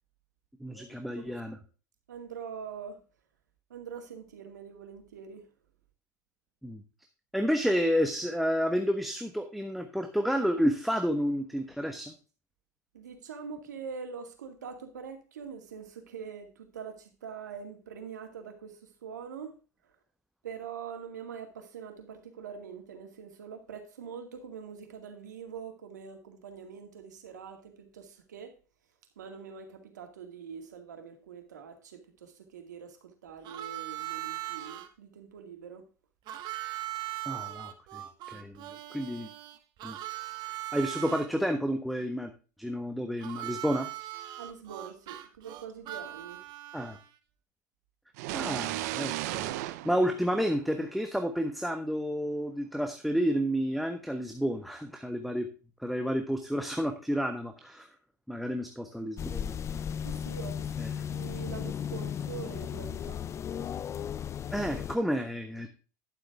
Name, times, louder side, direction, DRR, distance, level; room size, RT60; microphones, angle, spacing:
voice 1, 0.6-1.6 6.6-6.8 7.3-12.1 37.2-38.0 38.3-39.3 39.8-40.0 40.7-42.3 42.6-43.9 46.7-47.0 48.3-55.5 55.8-57.9 58.3-59.6 60.8-60.9 64.5-65.7, equal, ahead, 1.3 m, -30 dB
voice 2, 2.1-3.0 3.7-5.4 12.9-19.6 19.8-19.9 20.4-28.5 29.2-35.9 44.4-46.4 60.0-60.8 61.1-63.2, right 6 dB, 90° right, 2.3 m, -44 dB
Harmonica, 33.4-34.9 36.3-41.3 43.2-47.1, right 15 dB, 55° right, 1.4 m, -39 dB
sound 1, 48.2-51.0, right 16 dB, 70° right, 0.8 m, -35 dB
sound 2, 59.2-65.0, left 8 dB, 30° left, 0.5 m, -35 dB
11.5 x 7.7 x 3.5 m
hypercardioid pair, 90°, 9 cm